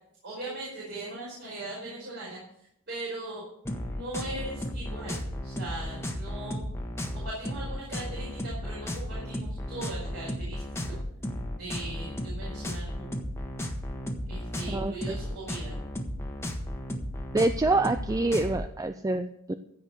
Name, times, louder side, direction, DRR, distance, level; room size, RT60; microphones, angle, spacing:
voice 1, 0.2-3.5 3.9-6.6 7.2-10.6 10.9-11.0 11.6-13.1 14.3-15.7, right 2 dB, 55° right, -5 dB, 5.0 m, -39 dB
sound 1, 3.6-18.7, equal, 10° left, 1.4 m, -34 dB
voice 2, 14.7-15.2 17.3-19.5, right 2 dB, 15° right, 9 dB, 0.4 m, -26 dB
15.5 x 5.2 x 7.9 m, 0.74 s
head